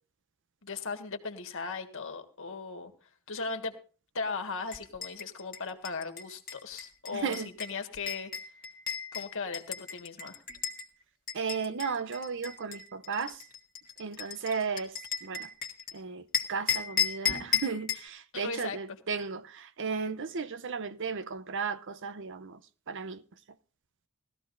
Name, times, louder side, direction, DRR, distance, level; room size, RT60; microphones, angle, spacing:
voice 1, 0.6-2.9 3.3-3.7 4.1-8.5 9.1-10.4 18.3-18.8, left 4 dB, 60° left, 1.7 m, -37 dB
sound 1, 4.7-10.9 11.3-15.9 16.3-18.1, left 7 dB, 40° left, 1.7 m, -35 dB
voice 2, 7.1-7.5 11.3-13.4 14.0-15.5 15.9-22.6 22.9-23.2, right 5 dB, 55° right, 0.7 m, -35 dB
19.0 x 14.0 x 2.6 m
head